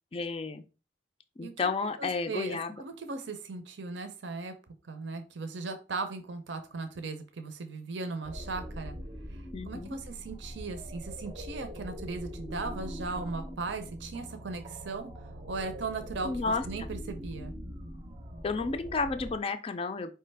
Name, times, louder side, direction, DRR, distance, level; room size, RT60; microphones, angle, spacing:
voice 1, 0.1-0.6 1.4-2.8 9.5-10.0 16.2-16.9 18.4-20.1, left 4 dB, 30° left, 8 dB, 0.4 m, -32 dB
voice 2, 2.0-4.5 4.8-9.0 9.3-15.1 15.5-17.5, right 3 dB, 65° right, 7 dB, 0.6 m, -38 dB
sound 1, 8.2-19.4, equal, 30° right, 0.6 m, -42 dB
4.7 x 3.2 x 3.3 m, 0.32 s
head